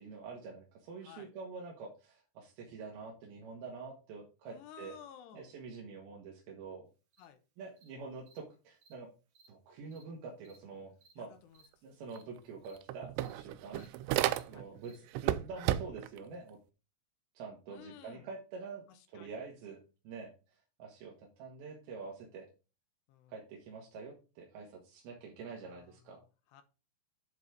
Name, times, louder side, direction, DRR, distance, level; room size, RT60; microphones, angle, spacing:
voice 1, 0.0-5.0 5.3-6.9 7.6-9.1 9.5-11.3 11.8-13.9 14.5-16.6 17.3-20.3 20.8-22.5 23.3-26.2, right 4 dB, 70° right, -1 dB, 3.1 m, -46 dB
voice 2, 4.5-5.5 7.2-7.4 11.2-11.6 13.7-13.9 14.5-14.7 17.7-18.3 18.9-19.4 23.1-23.3 25.6-26.6, left 9 dB, 85° left, 9 dB, 3.0 m, -55 dB
Cricket, 7.1-7.3 7.8-7.9 8.3-8.4 8.8-8.9 9.3-9.5 9.9-10.0 10.4-10.6 11.0-11.1 11.5-11.7 12.1-12.2 12.6-12.8 13.2-13.3 13.7-13.9 14.3-14.4 14.8-15.0, right 4 dB, 55° right, 2.7 m, -63 dB
sound 1, 12.2-12.3 12.5-14.8 15.1-16.2, right 13 dB, 90° right, 2.7 m, -33 dB
9.8 x 4.2 x 4.8 m, 0.32 s
omnidirectional pair, 4.8 m